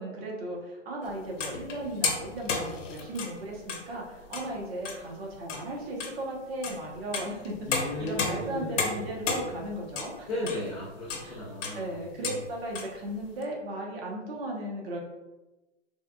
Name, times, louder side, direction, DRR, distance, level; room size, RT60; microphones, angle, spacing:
voice 1, 0.0-10.3 11.2-11.4 11.7-15.0, right 1 dB, 55° right, -1 dB, 0.9 m, -36 dB
sound 1, 1.0-3.9 4.2-4.5 4.8-5.2 5.5-5.7 6.0-6.1 6.6-10.7 11.1-11.3 11.6-11.9 12.2-12.4 12.8-12.9 13.4-13.5, left 4 dB, 90° left, 0.7 m, -33 dB
voice 2, 7.7-9.1 10.2-12.4, left 1 dB, 15° left, -9 dB, 0.3 m, -36 dB
3.4 x 2.3 x 2.2 m, 1.0 s
hypercardioid pair, 135°, 37 cm